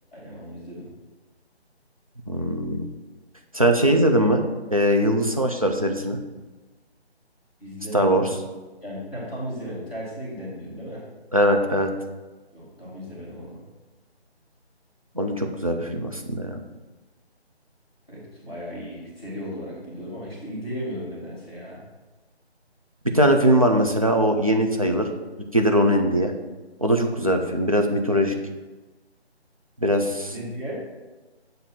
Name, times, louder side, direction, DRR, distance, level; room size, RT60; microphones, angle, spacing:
voice 1, 0.1-0.9 7.6-8.4 8.8-11.0 12.5-13.6 18.1-21.8 30.3-30.8, equal, 10° left, -12 dB, 0.8 m, -35 dB
voice 2, 2.3-2.9 3.5-4.4 4.7-6.2 7.9-8.3 11.3-11.9 15.1-16.6 23.1-25.1 25.5-26.3 26.8-28.3 29.8-30.3, equal, 35° right, 3 dB, 0.4 m, -21 dB
7.4 x 2.6 x 5.7 m, 1.2 s
figure-of-eight pair, 160°, 33 cm